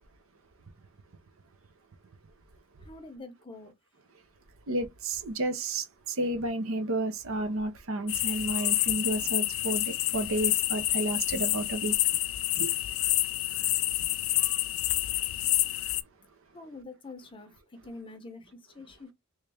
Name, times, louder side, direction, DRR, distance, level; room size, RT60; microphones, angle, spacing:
voice 1, 2.8-3.7 16.5-19.1, left 3 dB, 20° left, 0.7 m, -46 dB
voice 2, 4.7-12.0 12.6-12.7, right 1 dB, 60° right, 0.6 m, -31 dB
sound 1, 8.1-16.0, left 16 dB, 60° left, 0.4 m, -28 dB
3.4 x 3.1 x 3.3 m
head